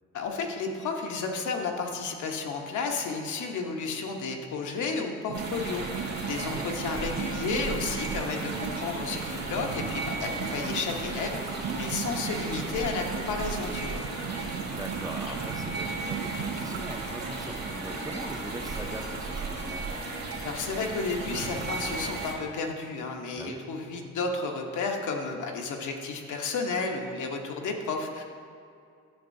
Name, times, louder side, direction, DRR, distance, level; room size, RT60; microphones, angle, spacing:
voice 1, 0.1-14.0 20.4-28.2, left 4 dB, 75° left, 2 dB, 1.0 m, -32 dB
sound 1, 5.3-22.3, right 3 dB, 55° right, 1.9 m, -35 dB
sound 2, 5.3-18.0, right 9 dB, 70° right, 0.4 m, -38 dB
Subway metro underground, 5.7-19.3, left 4 dB, 50° left, 0.7 m, -49 dB
voice 2, 6.3-6.7 14.6-19.8 23.4-23.6, right 2 dB, 10° right, 3 dB, 0.6 m, -41 dB
10.5 x 6.6 x 2.7 m, 2.5 s
cardioid pair, 90°, 30 cm